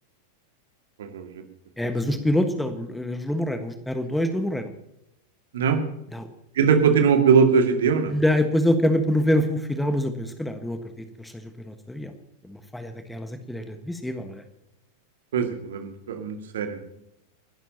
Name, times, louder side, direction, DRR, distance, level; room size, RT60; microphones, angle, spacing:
voice 1, 1.0-1.4 5.5-5.8 6.5-8.1 15.3-16.8, right 6 dB, 60° right, 6 dB, 2.3 m, -21 dB
voice 2, 1.8-4.7 6.1-6.3 8.1-12.1 12.4-14.4, left 1 dB, 5° left, 8 dB, 1.5 m, -25 dB
29.0 x 12.0 x 2.9 m, 0.82 s
figure-of-eight pair, 90°, 0 cm